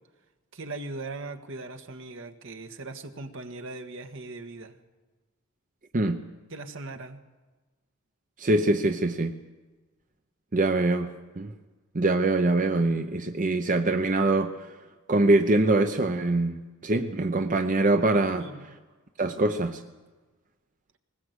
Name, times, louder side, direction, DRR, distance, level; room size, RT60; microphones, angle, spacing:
voice 1, 0.5-4.8 6.5-7.2 18.3-18.7, right 2 dB, 65° right, 6 dB, 1.6 m, -39 dB
voice 2, 8.4-9.4 10.5-11.5 11.9-14.8 15.1-18.5 19.2-19.8, right 2 dB, 40° right, 6 dB, 0.8 m, -24 dB
20.5 x 19.5 x 8.1 m, 1.3 s
head